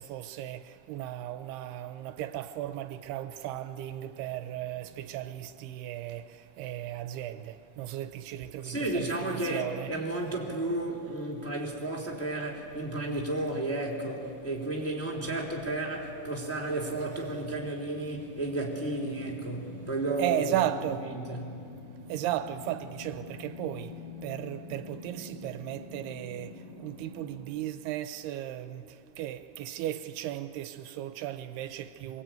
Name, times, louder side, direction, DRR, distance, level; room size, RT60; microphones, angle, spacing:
voice 1, 0.0-9.9 17.1-17.2 20.2-21.1 22.1-32.2, right 13 dB, 80° right, 2.7 m, -35 dB
voice 2, 8.6-20.4 21.1-21.6, right 2 dB, 5° left, 2.8 m, -33 dB
sound 1, 15.3-27.5, left 5 dB, 60° left, 6.4 m, -48 dB
25.0 x 23.5 x 9.1 m
omnidirectional pair, 4.7 m